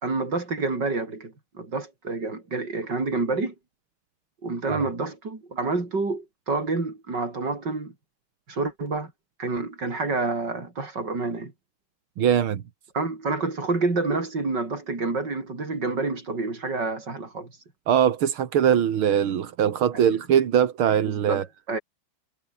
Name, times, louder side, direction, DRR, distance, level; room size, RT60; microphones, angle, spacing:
voice 1, 0.0-3.5 4.4-7.9 8.5-9.1 9.4-11.5 12.9-17.5 19.9-20.2 21.3-21.8, right 3 dB, 55° right, 5.5 m, -28 dB
voice 2, 12.2-12.6 17.9-21.4, right 9 dB, 85° right, 2.4 m, -21 dB
omnidirectional pair, 2.3 m